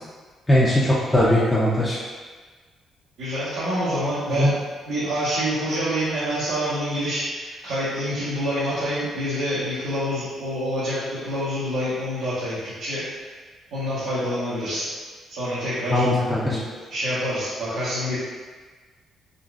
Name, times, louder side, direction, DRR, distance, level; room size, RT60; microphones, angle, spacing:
voice 1, 0.5-2.0 4.4-4.5 15.9-16.6, left 1 dB, 15° left, -8 dB, 0.5 m, -19 dB
voice 2, 3.2-4.5 4.9-13.0 13.7-14.8 15.3-16.0 16.9-18.2, equal, 90° right, -13 dB, 1.0 m, -26 dB
3.8 x 2.4 x 2.3 m, 1.4 s
cardioid pair, 90°, 0 cm